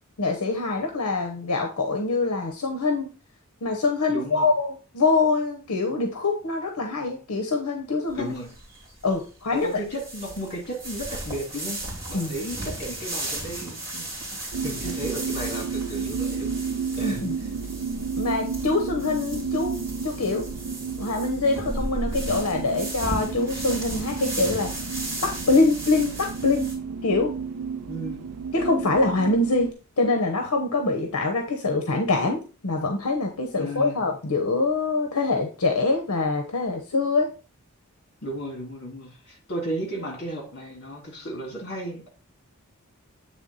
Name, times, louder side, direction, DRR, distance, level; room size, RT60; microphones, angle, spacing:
voice 1, 0.2-3.1 3.6-8.3 9.0-9.8 12.1-12.3 17.0-17.3 18.2-20.4 21.0-24.7 25.2-26.7 27.0-27.3 28.5-37.3, left 3 dB, 75° left, 3 dB, 0.8 m, -24 dB
voice 2, 4.1-4.5 8.2-8.5 9.5-16.6 17.0-17.3 27.9-28.2 33.5-34.1 38.2-42.1, right 1 dB, 50° left, 1 dB, 2.2 m, -34 dB
sound 1, 8.1-26.7, right 1 dB, 15° right, 2.8 m, -36 dB
sound 2, 14.5-29.7, right 5 dB, 85° right, 0.4 m, -32 dB
8.1 x 3.4 x 3.9 m, 0.35 s
head